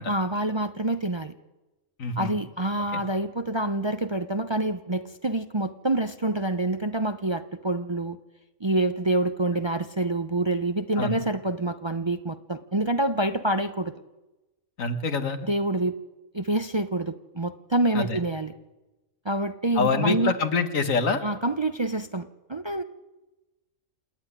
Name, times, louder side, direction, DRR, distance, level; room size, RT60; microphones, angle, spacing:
voice 1, 0.1-1.3 2.2-8.2 8.6-13.9 15.4-15.9 16.3-18.5 19.2-20.3 21.2-22.8, right 2 dB, 30° right, 8 dB, 0.6 m, -27 dB
voice 2, 2.0-2.4 2.9-3.0 11.0-11.2 14.8-15.4 18.0-18.2 19.8-21.2, left 4 dB, 85° left, 8 dB, 1.9 m, -25 dB
28.0 x 10.5 x 9.8 m, 1.1 s
omnidirectional pair, 1.4 m